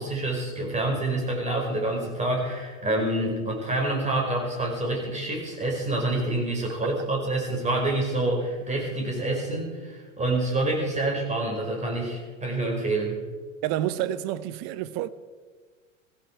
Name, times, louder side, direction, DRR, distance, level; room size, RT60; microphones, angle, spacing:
voice 1, 0.0-13.2, right 2 dB, 15° right, 5.2 m, -27 dB
voice 2, 13.6-15.1, right 13 dB, 40° right, 0.9 m, -28 dB
17.0 x 16.0 x 4.6 m
figure-of-eight pair, 90°, 40 cm